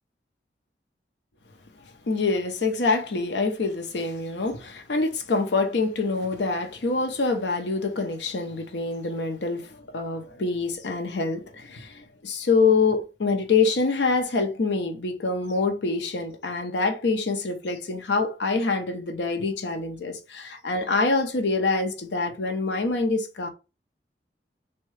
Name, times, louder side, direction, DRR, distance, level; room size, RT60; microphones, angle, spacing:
voice 1, 2.1-23.5, left 3 dB, 85° left, 0.7 m, -25 dB
3.5 x 2.2 x 3.2 m
head